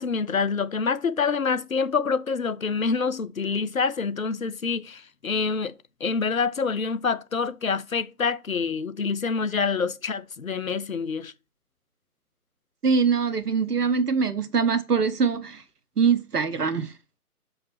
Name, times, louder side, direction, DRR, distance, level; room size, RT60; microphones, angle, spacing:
voice 1, 0.0-5.7 6.0-11.3, left 5 dB, 60° left, 0.9 m, -26 dB
voice 2, 12.8-15.6 16.0-16.9, right 5 dB, 90° right, 0.9 m, -23 dB
6.0 x 5.2 x 5.9 m
figure-of-eight pair, 145°, 46 cm